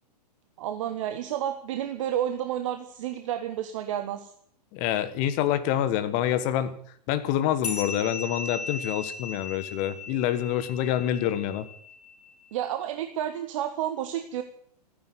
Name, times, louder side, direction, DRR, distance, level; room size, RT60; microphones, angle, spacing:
voice 1, 0.6-4.3 12.5-14.4, right 11 dB, 50° right, 8 dB, 1.3 m, -30 dB
voice 2, 4.7-6.8 7.1-11.6, left 11 dB, 35° left, 12 dB, 1.6 m, -26 dB
sound 1, 7.6-12.5, left 4 dB, 65° left, 5.5 m, -38 dB
14.5 x 10.0 x 9.4 m, 0.62 s
figure-of-eight pair, 105°, 21 cm